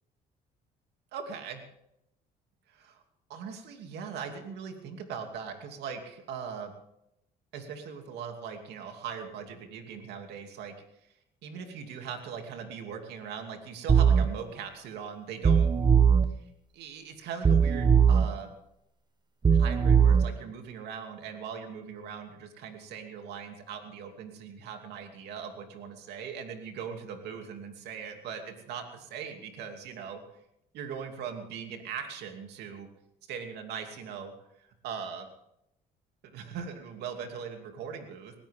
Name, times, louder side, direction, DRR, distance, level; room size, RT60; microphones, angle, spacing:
voice 1, 1.1-1.6 2.7-3.0 3.3-6.7 7.5-10.7 11.4-15.9 16.7-18.5 19.5-30.2 30.7-32.9 33.3-34.3 34.8-35.3 36.2-38.3, right 6 dB, 80° right, 4 dB, 2.7 m, -40 dB
sound 1, 13.9-14.2 15.4-16.2 17.4-18.2 19.4-20.2, right 7 dB, 25° right, 1.1 m, -20 dB
20.0 x 17.0 x 3.6 m, 0.79 s
cardioid pair, 110°, 17 cm